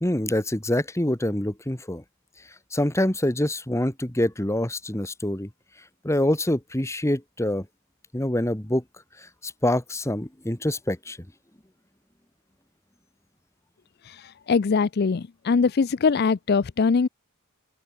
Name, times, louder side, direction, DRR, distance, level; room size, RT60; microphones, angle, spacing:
voice 1, 0.0-2.0 2.7-5.5 6.0-7.6 8.1-8.8 9.4-11.2, left 1 dB, 15° left, 1.6 m, -25 dB
voice 2, 14.0-17.1, left 5 dB, 50° left, 0.4 m, -22 dB
open air
head